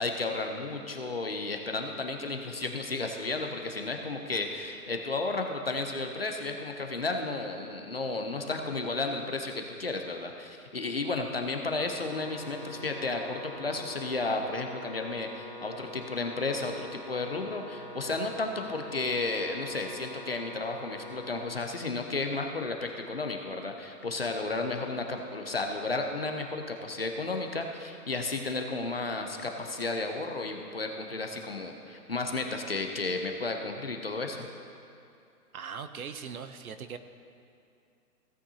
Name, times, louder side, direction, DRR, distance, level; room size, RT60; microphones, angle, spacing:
voice 1, 0.0-34.5, left 3 dB, 40° left, 3 dB, 0.5 m, -33 dB
sound 1, 12.0-21.4, left 1 dB, 15° left, 1.8 m, -45 dB
voice 2, 35.5-37.0, right 6 dB, 60° right, 10 dB, 0.8 m, -40 dB
16.0 x 8.6 x 2.8 m, 2.5 s
hypercardioid pair, 175°, 49 cm